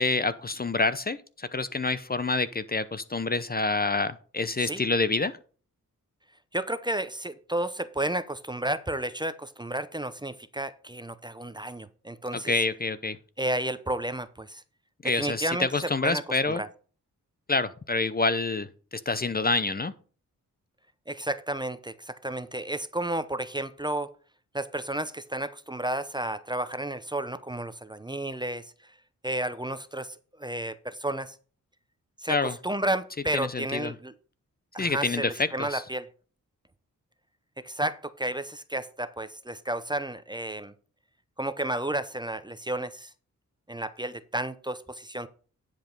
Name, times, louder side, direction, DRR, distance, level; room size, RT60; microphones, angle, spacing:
voice 1, 0.0-5.3 12.3-13.2 15.0-16.6 17.5-19.9 32.3-32.5 33.3-33.9 34.8-35.8, left 3 dB, 30° left, 0.7 m, -27 dB
voice 2, 6.5-12.5 13.4-14.6 15.0-16.2 16.5-16.7 21.1-24.1 24.5-28.9 29.2-31.4 32.2-34.1 34.7-36.1 37.6-40.7 41.4-43.1 43.7-45.3, right 1 dB, 15° right, 0.7 m, -32 dB
10.0 x 5.1 x 5.3 m
cardioid pair, 65°, 33 cm